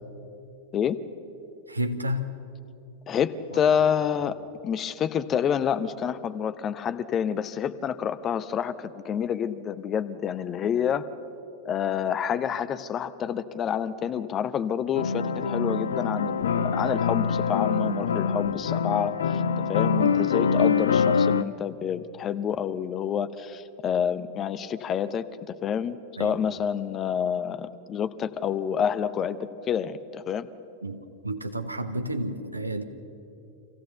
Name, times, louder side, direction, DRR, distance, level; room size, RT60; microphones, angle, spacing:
voice 1, 1.7-2.4 3.5-3.7 20.0-20.4 26.2-26.5 30.8-32.8, equal, 85° right, 8 dB, 1.1 m, -31 dB
voice 2, 3.1-4.4 4.6-11.0 11.6-19.4 19.7-30.5, left 8 dB, 30° left, 13 dB, 0.7 m, -28 dB
sound 1, 14.9-21.4, left 6 dB, 65° left, 0.6 m, -24 dB
25.5 x 15.5 x 6.8 m, 2.7 s
figure-of-eight pair, 90°, 0 cm